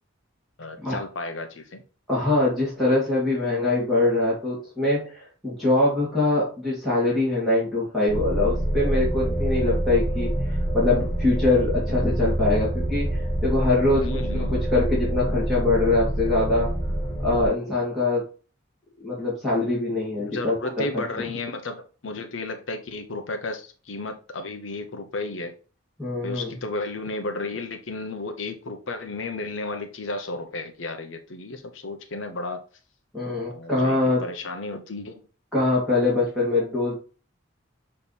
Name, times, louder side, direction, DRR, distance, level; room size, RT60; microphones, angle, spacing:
voice 1, 0.6-1.8 14.0-14.6 20.2-25.6 26.2-32.6 33.5-35.2, left 2 dB, 75° left, 6 dB, 0.9 m, -33 dB
voice 2, 2.1-14.0 14.5-16.7 17.2-18.2 19.0-21.0 26.0-26.5 33.1-34.3 35.5-37.0, left 2 dB, ahead, -9 dB, 2.5 m, -23 dB
sound 1, 8.1-17.5, right 1 dB, 20° left, 1.5 m, -26 dB
7.1 x 3.3 x 4.2 m, 0.36 s
head